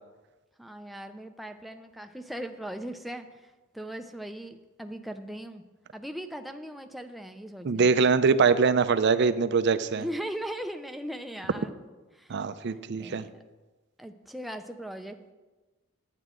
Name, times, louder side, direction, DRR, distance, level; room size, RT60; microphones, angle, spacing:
voice 1, 0.6-5.6 5.9-7.9 9.9-11.7 12.1-12.4 12.9-13.3 14.0-15.3, equal, ahead, 6 dB, 0.4 m, -39 dB
voice 2, 7.6-10.0 12.3-13.2, right 5 dB, 55° right, 13 dB, 0.4 m, -23 dB
11.0 x 9.0 x 3.8 m, 1.2 s
head